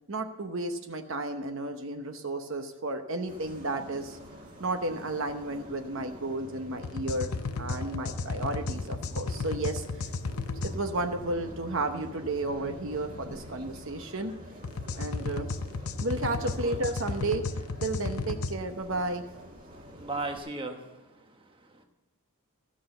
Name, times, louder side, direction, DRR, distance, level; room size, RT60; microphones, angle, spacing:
voice 1, 0.1-4.2 4.6-7.3 7.6-9.8 10.6-14.3 15.0-15.5 16.0-17.4 17.8-19.2, right 2 dB, 60° right, 6 dB, 0.9 m, -32 dB
sound 1, 3.3-20.4, equal, 40° right, 1.7 m, -47 dB
sound 2, 6.8-10.7 14.6-18.5, left 3 dB, 75° left, 0.6 m, -34 dB
voice 2, 19.8-21.4 21.7-21.8, right 2 dB, 20° right, 4 dB, 1.0 m, -37 dB
14.0 x 6.3 x 7.7 m, 1.1 s
head